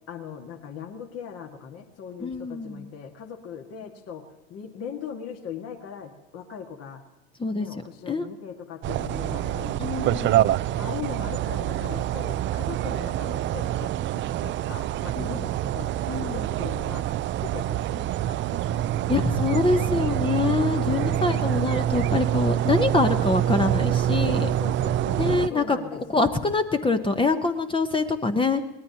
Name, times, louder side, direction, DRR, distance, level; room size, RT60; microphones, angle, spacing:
voice 1, 0.1-4.2 4.5-7.0 7.6-10.1 10.8-17.0 17.4-20.1 20.7-21.6 24.4-26.3, left 8 dB, 45° left, 4 dB, 1.8 m, -39 dB
voice 2, 2.2-2.9 7.4-7.7 8.1-8.3 9.8-10.5 15.2-15.4 16.1-16.5 19.1-24.5 25.2-25.8 26.1-28.6, left 3 dB, 15° left, 7 dB, 0.9 m, -25 dB
sound 1, 8.8-25.5, right 12 dB, 35° right, 0.4 m, -26 dB
24.0 x 18.5 x 2.9 m, 1.0 s
hypercardioid pair, 90°, 33 cm